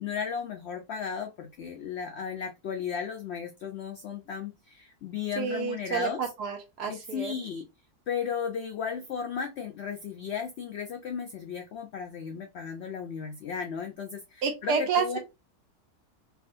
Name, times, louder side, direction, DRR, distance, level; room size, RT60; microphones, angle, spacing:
voice 1, 0.0-4.5 5.0-6.2 6.9-7.6 8.1-14.2 14.6-15.2, left 7 dB, 80° left, 0.5 m, -34 dB
voice 2, 5.4-7.3 14.4-15.2, right 6 dB, 90° right, 1.4 m, -29 dB
3.5 x 2.4 x 2.5 m
omnidirectional pair, 1.7 m